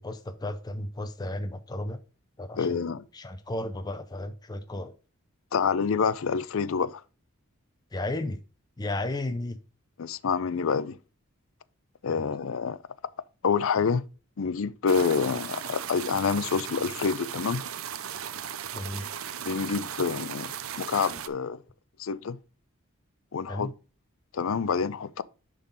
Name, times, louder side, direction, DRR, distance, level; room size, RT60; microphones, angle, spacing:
voice 1, 0.0-2.0 2.4-2.8 3.1-4.9 7.9-8.4 8.8-9.6 12.1-12.2 18.7-19.1 23.5-23.7, left 1 dB, 20° left, 0.5 m, -34 dB
voice 2, 2.6-3.0 5.5-7.0 10.0-11.0 12.0-12.8 13.4-14.0 14.4-17.6 19.4-21.6 22.0-22.4 23.3-23.7 24.3-25.2, left 5 dB, 65° left, 0.5 m, -27 dB
sound 1, 14.9-21.3, right 9 dB, 70° right, 0.6 m, -37 dB
10.5 x 3.8 x 3.9 m
head